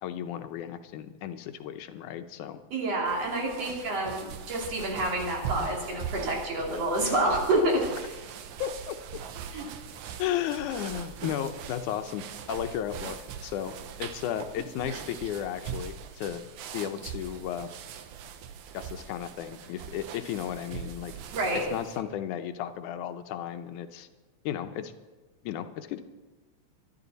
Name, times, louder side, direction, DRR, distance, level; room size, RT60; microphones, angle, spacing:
voice 1, 0.0-2.6 8.6-9.0 10.2-16.4 16.7-17.7 18.7-21.1 21.7-24.1 24.4-24.9 25.4-26.0, left 10 dB, 85° left, 9 dB, 2.3 m, -34 dB
voice 2, 2.7-8.2 9.5-9.7 21.3-21.6, right 1 dB, 55° right, -1 dB, 3.8 m, -28 dB
sound 1, 3.1-22.0, right 8 dB, 80° right, 2.3 m, -41 dB
23.0 x 11.5 x 4.1 m, 1.2 s
omnidirectional pair, 3.4 m